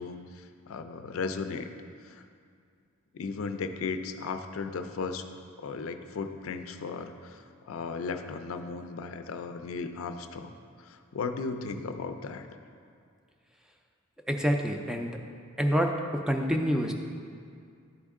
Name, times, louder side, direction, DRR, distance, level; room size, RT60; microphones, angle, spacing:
voice 1, 0.0-1.7 2.0-2.2 3.1-5.3 5.6-10.5 10.8-12.5, left 4 dB, 80° left, 8 dB, 0.4 m, -36 dB
voice 2, 14.3-15.1 15.6-16.9, equal, 5° right, 3 dB, 0.4 m, -27 dB
11.0 x 4.4 x 3.6 m, 2.3 s
head